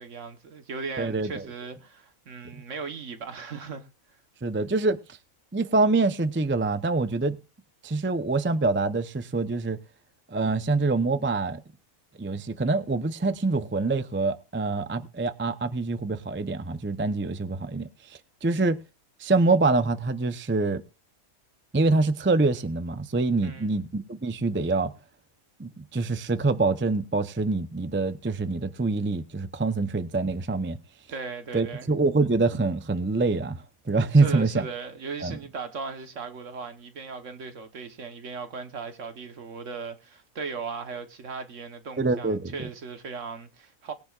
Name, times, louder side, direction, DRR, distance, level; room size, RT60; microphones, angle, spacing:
voice 1, 0.0-3.9 23.3-23.8 31.1-31.9 34.1-43.9, right 4 dB, 60° right, 1.6 m, -37 dB
voice 2, 1.0-1.5 4.4-5.0 5.5-7.4 7.8-9.8 10.3-11.6 12.2-18.8 19.2-20.8 21.7-24.9 25.6-30.8 31.5-34.7 35.2-35.4 42.0-42.7, right 3 dB, 15° right, 0.5 m, -25 dB
20.0 x 10.5 x 2.5 m
omnidirectional pair, 1.5 m